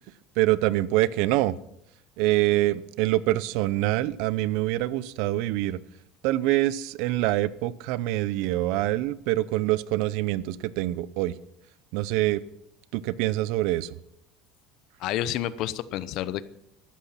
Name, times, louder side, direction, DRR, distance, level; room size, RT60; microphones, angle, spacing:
voice 1, 0.4-1.5 2.2-5.8 6.2-11.4 11.9-12.4 12.9-13.9, right 16 dB, 65° right, 19 dB, 0.7 m, -25 dB
voice 2, 15.0-16.5, left 12 dB, 55° left, 16 dB, 0.8 m, -29 dB
14.5 x 12.0 x 5.9 m, 0.79 s
cardioid pair, 150°, 0 cm